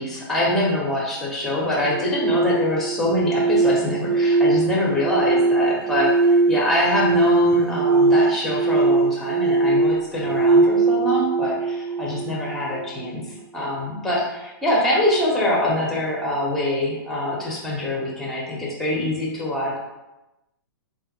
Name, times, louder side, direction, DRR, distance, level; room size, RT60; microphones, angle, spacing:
voice 1, 0.0-13.2 13.5-19.8, left 1 dB, ahead, -4 dB, 0.6 m, -24 dB
sound 1, 1.8-12.9, right 3 dB, 45° right, 0.5 m, -20 dB
3.6 x 2.2 x 2.9 m, 0.97 s
hypercardioid pair, 150°, 13 cm